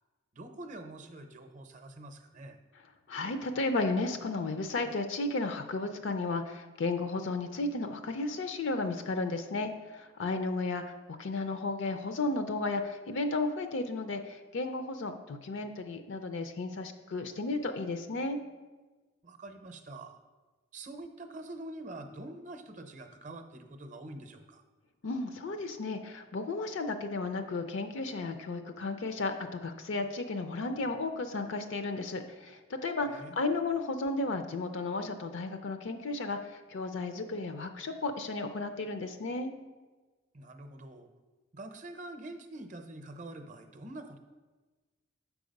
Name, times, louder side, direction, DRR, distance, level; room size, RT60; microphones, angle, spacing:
voice 1, 0.3-2.6 19.2-20.2 20.7-24.6 33.0-33.4 40.3-41.1 41.5-44.2, right 2 dB, 40° right, 6 dB, 0.6 m, -45 dB
voice 2, 3.1-18.4 25.0-39.5, left 3 dB, 70° left, 7 dB, 0.5 m, -34 dB
7.0 x 4.8 x 5.2 m, 1.3 s
head